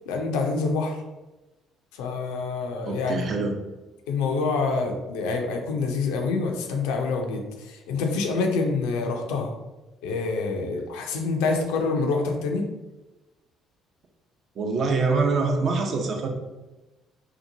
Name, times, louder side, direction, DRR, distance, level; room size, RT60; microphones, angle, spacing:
voice 1, 0.1-1.0 2.0-3.2 4.1-7.4 7.9-9.5 10.0-12.6, left 4 dB, 75° left, 3 dB, 0.4 m, -26 dB
voice 2, 2.8-3.5 14.6-16.3, right 4 dB, 55° right, 2 dB, 0.5 m, -24 dB
2.8 x 2.2 x 2.6 m, 1.1 s
hypercardioid pair, 55°, 0 cm